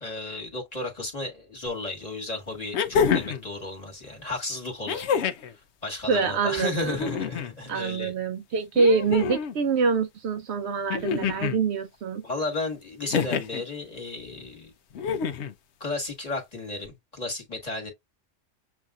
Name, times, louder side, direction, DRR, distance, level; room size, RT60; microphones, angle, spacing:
voice 1, 0.0-5.1 5.8-8.1 12.2-14.7 15.8-17.9, left 2 dB, 35° left, 1.6 m, -33 dB
sound 1, 1.7-1.8 2.7-3.5 4.9-5.5 6.8-7.5 8.8-9.6 10.9-11.6 13.1-13.6 15.0-15.5 16.9-17.0, left 6 dB, 70° left, 0.9 m, -27 dB
voice 2, 6.1-7.0 7.7-12.2, right 4 dB, 70° right, 0.9 m, -25 dB
7.2 x 2.5 x 2.4 m
omnidirectional pair, 1.2 m